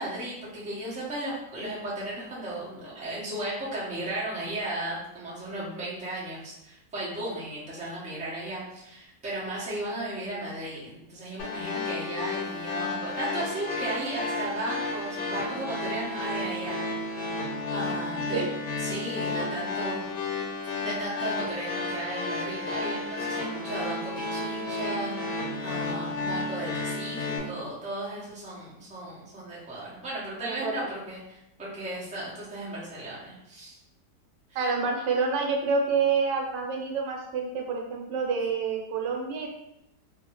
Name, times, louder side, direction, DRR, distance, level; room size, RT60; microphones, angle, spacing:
voice 1, 0.0-16.9 17.7-18.4 18.8-20.1 20.8-33.8, right 1 dB, 10° right, -8 dB, 0.5 m, -35 dB
sound 1, 11.4-27.4, left 2 dB, 75° left, 1.3 m, -32 dB
voice 2, 18.2-18.5 30.4-30.9 34.5-39.5, right 5 dB, 85° right, 1 dB, 1.3 m, -28 dB
2.7 x 2.6 x 2.9 m, 0.85 s
omnidirectional pair, 1.8 m